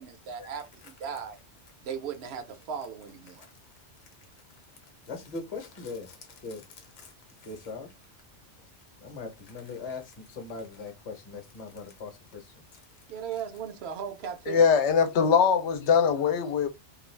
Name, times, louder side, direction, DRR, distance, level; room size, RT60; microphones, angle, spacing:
voice 1, 0.0-1.4 1.8-3.5 13.1-14.7, right 7 dB, 65° right, 0.8 m, -37 dB
voice 2, 5.1-7.1 7.4-7.9 9.0-12.5 15.2-15.3, left 4 dB, 40° left, 0.7 m, -40 dB
voice 3, 14.5-16.7, left 6 dB, 75° left, 0.9 m, -22 dB
2.5 x 2.3 x 3.1 m
omnidirectional pair, 1.2 m